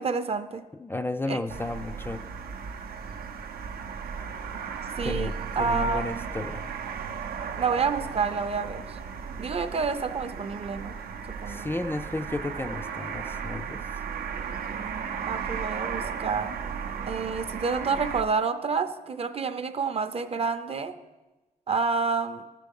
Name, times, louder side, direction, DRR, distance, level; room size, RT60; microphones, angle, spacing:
voice 1, 0.0-0.6 1.3-1.4 5.0-5.3 5.6-6.3 7.6-9.0 9.4-11.0 11.3-11.7 14.7-16.5 17.0-21.0 21.7-22.4, right 5 dB, 40° right, 10 dB, 0.5 m, -29 dB
voice 2, 0.8-2.2 5.0-6.7 11.5-13.8, left 2 dB, 15° left, 7 dB, 0.3 m, -33 dB
sound 1, 1.5-18.2, right 6 dB, 85° right, 0.6 m, -35 dB
13.5 x 4.6 x 5.3 m, 1.1 s
cardioid pair, 90°, 15 cm